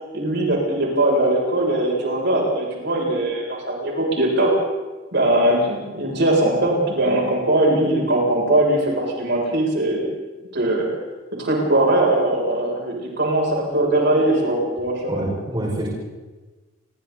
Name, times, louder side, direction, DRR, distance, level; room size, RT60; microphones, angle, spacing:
voice 1, 0.1-4.5 5.1-10.0 10.5-10.9 11.3-15.2, right 1 dB, 60° right, -2 dB, 7.2 m, -20 dB
voice 2, 15.1-15.9, right 1 dB, 25° right, -4 dB, 5.7 m, -26 dB
29.5 x 23.5 x 4.2 m, 1.2 s
head